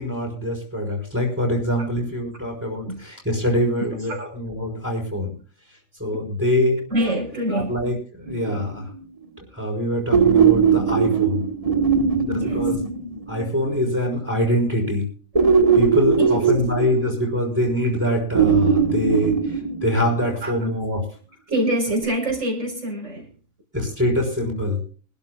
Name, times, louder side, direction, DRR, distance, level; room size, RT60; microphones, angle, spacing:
voice 1, 0.0-5.3 6.0-6.8 7.5-8.9 9.5-11.4 12.1-12.8 13.3-15.1 15.7-19.4 19.8-21.0 23.7-24.8, left 1 dB, 10° right, 2 dB, 5.4 m, -24 dB
voice 2, 6.9-7.7 12.4-12.7 16.2-16.5 20.4-20.7 21.5-23.3, right 1 dB, 65° right, -1 dB, 5.0 m, -25 dB
sound 1, 8.3-9.0 10.1-13.7 15.3-17.6 18.3-20.3 22.0-22.1, right 6 dB, 25° right, 1.5 m, -20 dB
24.5 x 12.5 x 2.4 m, 0.40 s
omnidirectional pair, 1.4 m